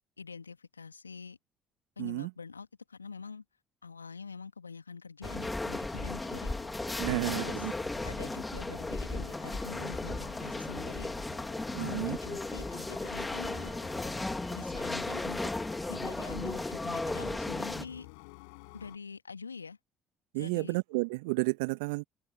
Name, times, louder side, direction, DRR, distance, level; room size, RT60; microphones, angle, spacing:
voice 1, 0.2-1.4 2.0-3.4 3.8-6.6 7.3-7.7 8.0-11.1 11.7-13.8 14.5-15.5 15.9-18.1 18.7-19.8 20.3-20.7, left 5 dB, 85° left, 2.2 m, -45 dB
voice 2, 2.0-2.3 7.0-7.7 11.8-12.2 20.3-22.0, right 27 dB, 70° right, 2.0 m, -31 dB
sound 1, 5.2-17.8, left 2 dB, 15° left, 2.9 m, -35 dB
sound 2, 5.9-19.0, left 32 dB, 65° left, 7.1 m, -50 dB
figure-of-eight pair, 50°, 0 cm